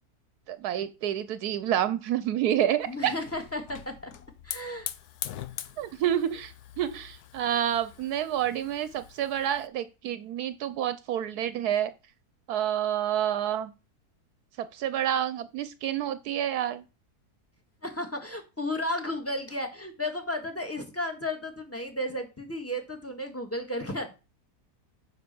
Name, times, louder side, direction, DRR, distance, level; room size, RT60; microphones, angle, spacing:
voice 1, 0.5-3.1 5.8-11.9 12.5-13.7 14.6-16.8, right 11 dB, 75° right, 13 dB, 1.1 m, -28 dB
Hiss / Fire, 2.8-9.7, left 11 dB, 75° left, 1.2 m, -43 dB
voice 2, 2.9-4.1 4.4-4.9 17.8-24.2, left 1 dB, 10° left, 5 dB, 1.8 m, -33 dB
9.6 x 4.9 x 6.9 m, 0.30 s
omnidirectional pair, 1.7 m